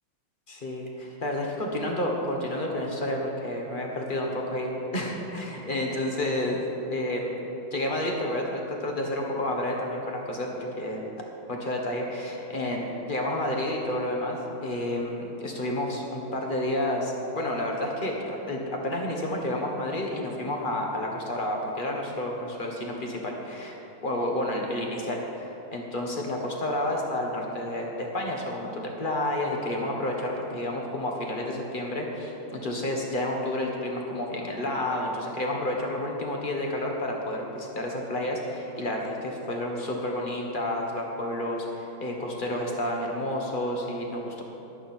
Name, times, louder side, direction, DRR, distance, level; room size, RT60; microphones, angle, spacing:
voice 1, 0.5-7.3 7.7-11.0 11.5-44.4, left 1 dB, 25° left, 0 dB, 1.4 m, -30 dB
14.0 x 11.5 x 4.5 m, 3.0 s
omnidirectional pair, 2.4 m